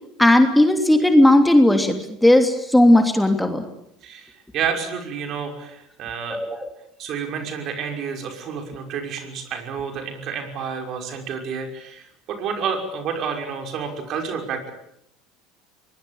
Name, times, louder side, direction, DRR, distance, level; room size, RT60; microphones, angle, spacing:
voice 1, 0.2-3.6 6.3-6.7, left 1 dB, 5° left, 6 dB, 3.1 m, -16 dB
voice 2, 4.0-6.4 7.0-14.7, right 6 dB, 50° right, 5 dB, 6.0 m, -30 dB
24.0 x 20.0 x 9.0 m, 0.77 s
hypercardioid pair, 80°, 0 cm